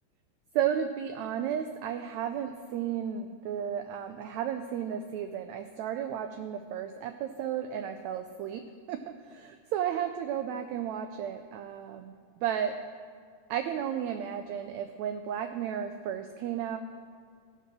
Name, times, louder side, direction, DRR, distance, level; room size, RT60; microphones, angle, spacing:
voice 1, 0.5-12.7 13.5-16.8, right 9 dB, 80° right, 7 dB, 1.6 m, -33 dB
16.0 x 5.5 x 6.1 m, 2.1 s
omnidirectional pair, 3.7 m